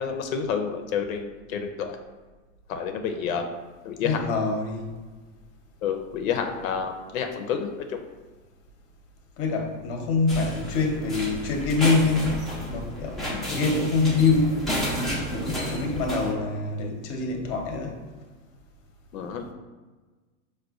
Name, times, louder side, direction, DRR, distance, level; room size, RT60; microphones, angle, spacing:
voice 1, 0.0-2.0 2.7-3.4 3.8-4.3 5.8-8.0 13.3-13.6 19.1-19.5, left 7 dB, 90° left, 5 dB, 0.5 m, -29 dB
voice 2, 4.0-5.0 9.4-18.0, left 3 dB, 35° left, 2 dB, 0.7 m, -25 dB
sound 1, 10.3-16.3, equal, ahead, 0.4 m, -31 dB
4.8 x 2.2 x 2.3 m, 1.3 s
supercardioid pair, 125°, 40 cm